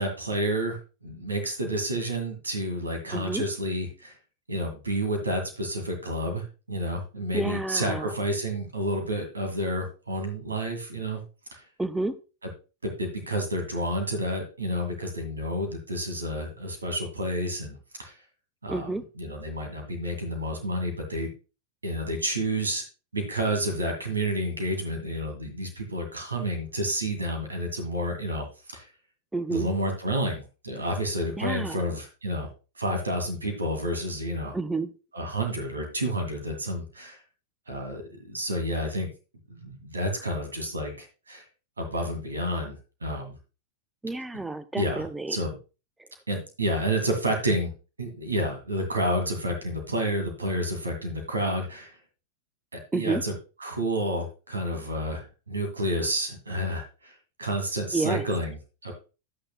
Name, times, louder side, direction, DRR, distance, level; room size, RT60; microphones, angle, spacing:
voice 1, 0.0-4.1 4.5-11.2 11.5-11.6 12.8-18.2 18.6-18.9 19.2-21.3 21.8-22.8 23.1-28.9 29.5-32.5 32.8-34.5 35.1-37.2 37.7-39.1 39.5-41.4 41.8-43.3 44.7-45.6 46.3-47.7 48.0-52.0 52.7-58.9, right 1 dB, 75° right, 5 dB, 2.2 m, -30 dB
voice 2, 3.1-3.4 7.3-8.1 11.8-12.1 18.7-19.0 29.3-29.7 31.4-31.8 34.5-34.9 44.0-45.4 52.9-53.2 57.9-58.2, right 3 dB, 5° right, 12 dB, 0.7 m, -30 dB
11.0 x 8.8 x 2.3 m, 0.32 s
figure-of-eight pair, 90°, 0 cm